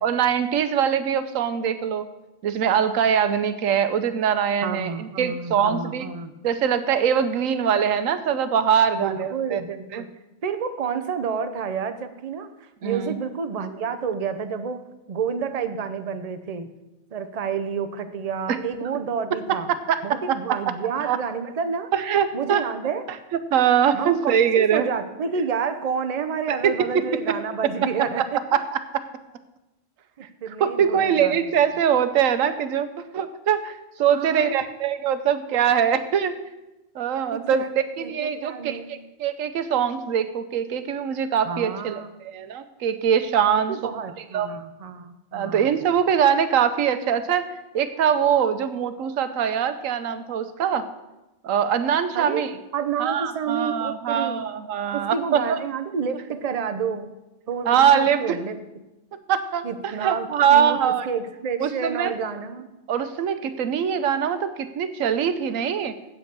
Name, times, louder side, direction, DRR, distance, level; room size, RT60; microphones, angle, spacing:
voice 1, 0.0-2.1 2.4-6.1 6.4-9.6 9.9-10.1 12.8-13.2 18.5-18.6 19.7-20.0 20.3-20.4 21.0-21.2 21.9-22.6 23.5-24.9 26.6-26.7 28.2-28.3 28.5-28.8 30.6-32.9 33.1-36.4 36.9-44.0 44.3-44.5 45.3-47.5 47.7-50.9 51.4-52.5 53.0-55.6 57.7-58.4 59.3-61.1 61.6-62.1 62.9-65.9, right 8 dB, 85° right, 11 dB, 1.1 m, -22 dB
voice 2, 4.6-6.3 8.9-10.1 10.4-14.8 15.1-16.7 17.1-19.7 20.0-21.9 22.3-23.0 23.9-28.4 30.2-31.5 34.1-34.6 37.3-37.7 38.0-38.1 38.4-38.9 41.4-42.2 43.7-45.7 52.1-52.4 52.7-54.4 54.9-57.1 57.5-58.6 59.6-62.7, right 6 dB, 40° right, 9 dB, 0.6 m, -29 dB
8.3 x 7.8 x 6.7 m, 1.0 s
omnidirectional pair, 1.4 m